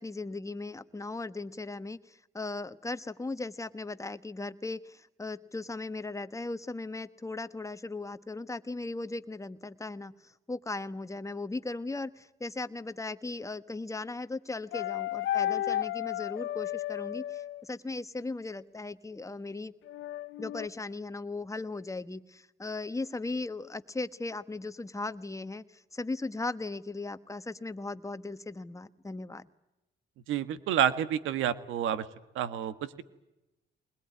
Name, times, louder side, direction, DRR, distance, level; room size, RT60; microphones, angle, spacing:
voice 1, 0.0-10.1 10.5-19.7 20.4-25.6 25.9-29.5, left 3 dB, 15° left, 11 dB, 1.3 m, -37 dB
sound 1, 14.7-17.6 19.9-20.7, left 13 dB, 80° left, 1.0 m, -33 dB
voice 2, 30.3-32.1 32.3-33.0, right 10 dB, 90° right, 13 dB, 1.5 m, -29 dB
22.0 x 21.0 x 9.6 m, 0.96 s
cardioid pair, 90°, 20 cm